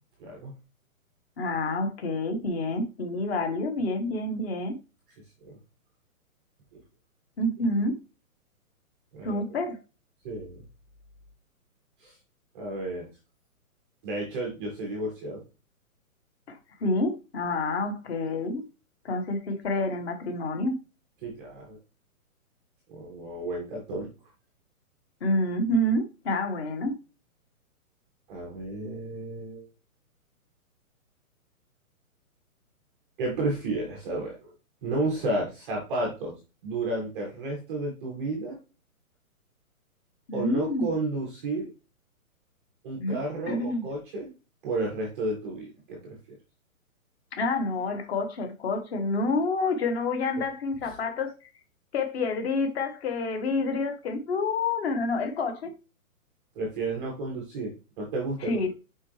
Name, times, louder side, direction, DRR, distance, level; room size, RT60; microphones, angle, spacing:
voice 1, 0.2-0.5 5.4-5.6 6.7-6.8 9.1-9.4 10.2-10.6 12.0-12.1 12.5-13.1 14.0-15.4 21.2-21.8 22.9-24.1 28.3-29.7 33.2-34.5 34.8-36.4 36.6-38.6 40.3-41.7 42.8-44.3 44.6-46.2 50.8-50.9 56.5-58.7, right 2 dB, 5° right, -3 dB, 0.5 m, -32 dB
voice 2, 1.4-4.7 7.4-8.0 9.2-9.8 16.5-18.6 19.0-20.7 25.2-26.9 40.3-40.9 43.0-43.2 43.5-43.8 47.3-51.3 51.9-55.7 58.4-58.7, left 2 dB, 45° left, 6 dB, 1.6 m, -28 dB
6.3 x 4.9 x 3.2 m, 0.31 s
hypercardioid pair, 160°, 43 cm